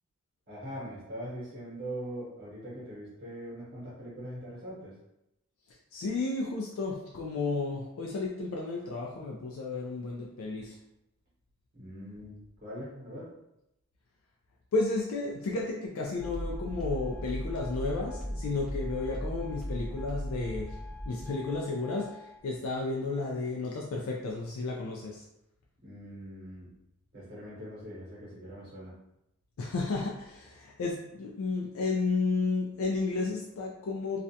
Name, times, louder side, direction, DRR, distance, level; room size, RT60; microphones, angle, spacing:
voice 1, 0.5-4.9 11.7-13.3 25.8-26.7 27.1-28.9, equal, 50° right, -7 dB, 0.9 m, -42 dB
voice 2, 5.9-10.7 14.7-20.8 21.1-25.2 29.6-34.2, left 3 dB, 80° left, -2 dB, 0.4 m, -32 dB
sound 1, 16.2-22.4, equal, 5° right, 0.4 m, -38 dB
2.4 x 2.1 x 2.7 m, 0.86 s
head